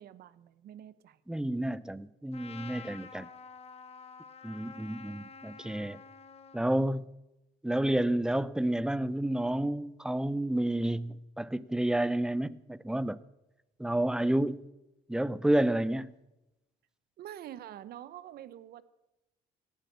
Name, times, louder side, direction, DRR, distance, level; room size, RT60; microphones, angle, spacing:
voice 1, 0.0-1.2 17.2-18.8, right 11 dB, 65° right, 1.0 m, -46 dB
voice 2, 1.3-3.3 4.4-6.0 6.5-7.1 7.6-13.2 13.8-14.6 15.1-16.1, right 1 dB, 5° right, 0.6 m, -30 dB
Trumpet, 2.3-6.6, left 5 dB, 35° left, 1.5 m, -49 dB
17.5 x 11.5 x 6.8 m
cardioid pair, 110°, 17 cm